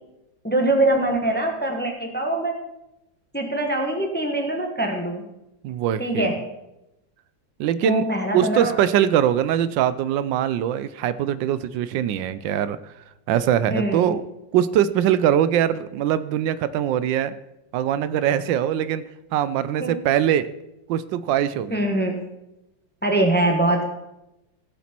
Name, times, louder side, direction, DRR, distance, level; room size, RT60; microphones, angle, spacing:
voice 1, 0.4-2.6 3.3-5.2 6.0-6.4 7.8-8.7 13.7-14.2 19.8-19.9 21.7-22.2 23.0-23.8, right 1 dB, 5° left, 3 dB, 1.0 m, -23 dB
voice 2, 5.6-6.3 7.6-8.0 8.3-12.8 13.3-14.2 14.5-17.3 17.7-19.0 19.3-20.5 20.9-21.8, right 10 dB, 85° right, 15 dB, 1.3 m, -22 dB
16.0 x 7.3 x 4.4 m, 0.92 s
omnidirectional pair, 2.0 m